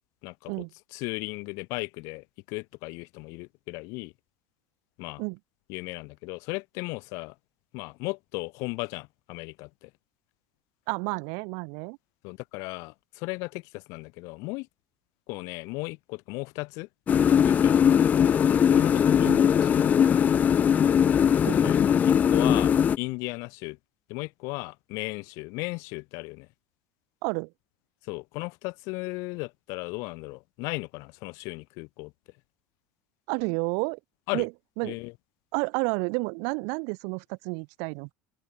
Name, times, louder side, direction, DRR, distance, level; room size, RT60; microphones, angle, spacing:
voice 1, 0.2-0.6 0.9-4.1 5.0-5.2 5.7-7.3 7.7-9.9 12.2-14.7 15.3-16.9 17.3-18.4 18.7-20.1 21.5-23.8 24.1-26.5 28.0-32.1 34.3-34.5 34.8-35.1, left 27 dB, 60° left, 4.6 m, -36 dB
voice 2, 10.9-12.0 19.2-19.4 21.4-21.7 27.2-27.5 33.3-34.0 34.3-34.5 34.8-34.9 35.5-38.1, right 39 dB, 60° right, 4.7 m, -30 dB
sound 1, 17.1-23.0, left 8 dB, 25° left, 1.8 m, -20 dB
open air
supercardioid pair, 150°, 6 cm